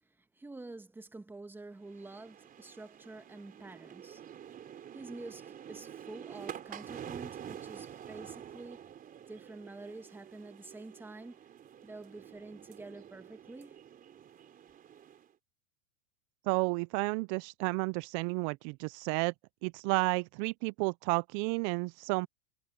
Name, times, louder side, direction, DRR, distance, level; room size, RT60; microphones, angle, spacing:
voice 1, 0.0-4.3 4.9-8.9 9.3-11.4 11.8-13.8, right 2 dB, 5° right, 1.4 m, -48 dB
sound 1, 1.8-15.3, right 9 dB, 30° right, 4.1 m, -48 dB
voice 2, 16.5-19.3 19.6-22.3, right 28 dB, 45° right, 0.4 m, -31 dB
supercardioid pair, 125°, 30 cm